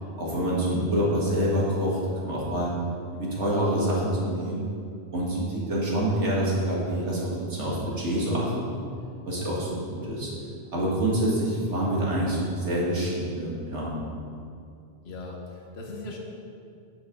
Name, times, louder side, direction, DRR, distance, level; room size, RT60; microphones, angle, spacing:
voice 1, 0.2-2.7 3.1-4.7 5.1-8.8 9.3-10.3 10.7-13.9, right 1 dB, 80° right, -5 dB, 2.3 m, -26 dB
voice 2, 15.0-16.2, left 2 dB, 65° left, -1 dB, 1.3 m, -39 dB
9.4 x 8.1 x 3.8 m, 2.4 s
omnidirectional pair, 1.2 m